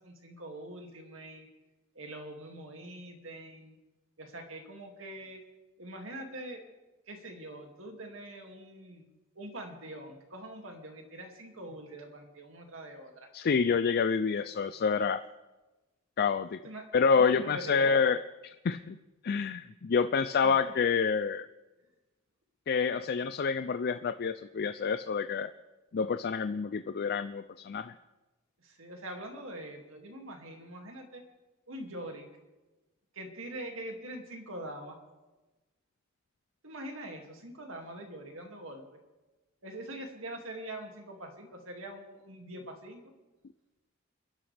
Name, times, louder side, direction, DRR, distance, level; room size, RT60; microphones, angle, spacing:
voice 1, 0.0-1.5 1.9-3.8 4.2-5.4 5.8-6.6 7.1-9.0 9.4-13.3 16.6-16.8 17.1-17.9 20.3-20.6 28.6-31.2 31.7-32.3 33.1-35.0 36.6-39.0 39.6-43.0, right 1 dB, 70° right, 2 dB, 2.4 m, -44 dB
voice 2, 13.3-15.2 16.2-16.6 16.9-19.0 19.2-21.5 22.7-25.5 25.9-27.9, left 5 dB, 50° left, 11 dB, 0.4 m, -28 dB
29.0 x 11.0 x 3.4 m, 1.1 s
head